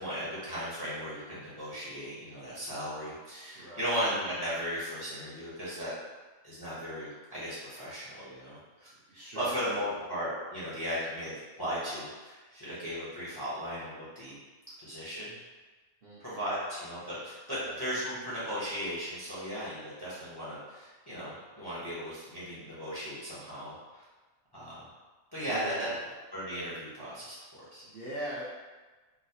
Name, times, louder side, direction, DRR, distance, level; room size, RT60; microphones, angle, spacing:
voice 1, 0.0-5.9 6.4-14.4 14.8-15.3 16.2-24.0 24.5-24.8 25.3-25.9 26.3-27.4 27.7-27.8, equal, 20° left, -10 dB, 0.7 m, -36 dB
voice 2, 3.5-4.0 9.1-9.7 16.0-16.4 17.5-17.8 25.4-26.0 27.8-28.4, right 1 dB, 50° right, -8 dB, 0.8 m, -42 dB
3.9 x 2.2 x 2.7 m, 1.3 s
omnidirectional pair, 1.4 m